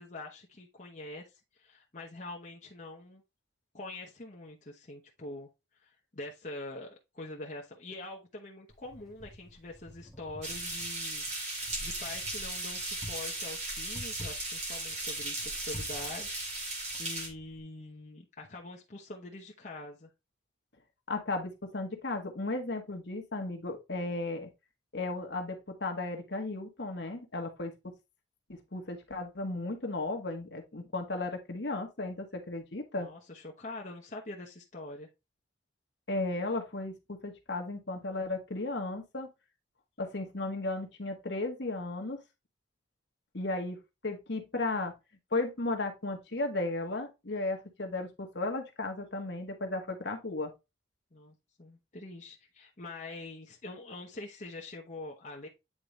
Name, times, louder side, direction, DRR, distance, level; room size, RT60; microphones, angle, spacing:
voice 1, 0.0-3.2 3.7-5.5 5.8-20.1 33.0-35.1 51.1-55.5, left 2 dB, 40° left, 1.0 m, -45 dB
Wind, 8.7-17.6, equal, ahead, 1.6 m, -49 dB
sound 1, 10.4-17.3, right 2 dB, 35° right, 2.4 m, -37 dB
voice 2, 21.1-24.5 24.9-27.9 28.5-33.1 36.1-39.3 40.0-42.2 43.3-44.9 45.3-50.5, left 2 dB, 60° left, 1.3 m, -35 dB
8.8 x 3.8 x 3.2 m
head